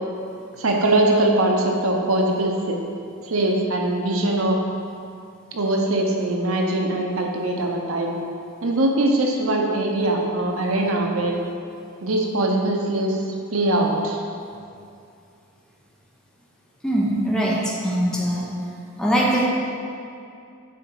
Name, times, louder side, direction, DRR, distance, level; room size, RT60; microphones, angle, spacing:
voice 1, 0.6-2.8 3.3-4.6 5.5-8.1 8.6-11.4 12.0-13.2 13.5-14.2, right 1 dB, 75° right, 1 dB, 0.8 m, -21 dB
voice 2, 16.8-18.5 19.0-19.4, right 1 dB, 5° left, -5 dB, 0.8 m, -22 dB
6.8 x 3.9 x 4.7 m, 2.5 s
head